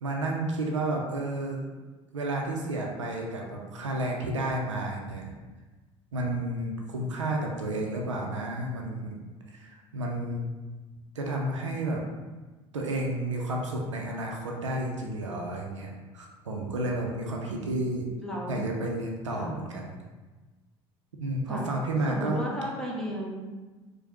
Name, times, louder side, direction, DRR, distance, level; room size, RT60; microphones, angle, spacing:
voice 1, 0.0-1.7 2.1-5.3 6.1-9.2 9.5-10.5 11.1-12.0 12.7-18.1 18.5-20.0 21.2-22.4, right 1 dB, 85° right, 0 dB, 0.5 m, -31 dB
voice 2, 18.2-18.6 19.3-19.6 21.5-21.7 22.1-23.5, equal, 5° left, -4 dB, 1.1 m, -34 dB
4.7 x 2.1 x 2.9 m, 1.3 s
figure-of-eight pair, 65°, 15 cm